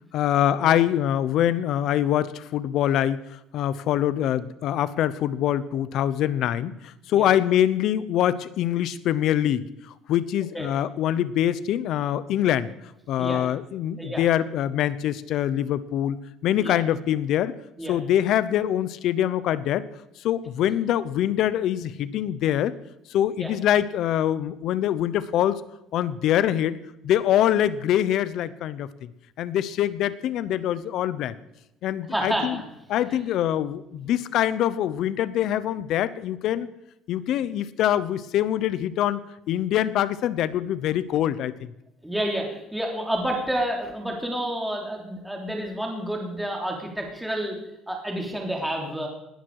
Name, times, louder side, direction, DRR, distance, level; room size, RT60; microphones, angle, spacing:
voice 1, 0.1-3.2 3.5-9.7 10.1-12.7 13.1-16.2 16.4-17.5 17.9-19.9 20.2-22.7 23.1-25.6 25.9-26.8 27.0-29.1 29.4-31.3 31.8-32.6 32.9-36.7 37.1-39.2 39.5-41.7, left 11 dB, 60° left, 16 dB, 0.9 m, -24 dB
voice 2, 32.1-32.6 33.1-33.2 42.0-47.6 47.9-49.1, right 1 dB, 5° right, 0 dB, 3.3 m, -29 dB
20.0 x 12.5 x 4.8 m, 0.86 s
cardioid pair, 140°, 0 cm